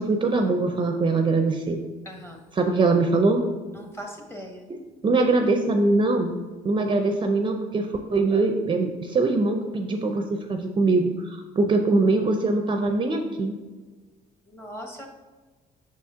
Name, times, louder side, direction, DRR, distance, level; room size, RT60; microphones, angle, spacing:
voice 1, 0.0-1.8 2.5-3.4 4.7-6.4 6.6-13.6, right 3 dB, 30° right, 5 dB, 0.5 m, -22 dB
voice 2, 2.0-2.4 3.7-4.6 14.5-15.1, equal, 15° left, 2 dB, 1.0 m, -39 dB
6.2 x 4.3 x 3.6 m, 1.3 s
cardioid pair, 110°, 17 cm